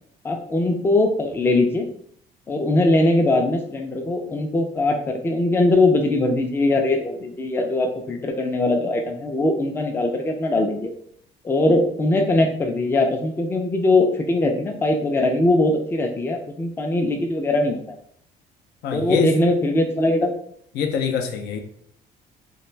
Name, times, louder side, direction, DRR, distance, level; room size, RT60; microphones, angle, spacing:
voice 1, 0.2-1.9 2.5-10.9 11.4-18.0 18.9-20.3, left 2 dB, 15° left, 4 dB, 0.3 m, -21 dB
voice 2, 18.8-19.3 20.8-21.6, left 6 dB, 75° left, 6 dB, 0.4 m, -24 dB
2.5 x 2.2 x 3.1 m, 0.66 s
cardioid pair, 110°, 17 cm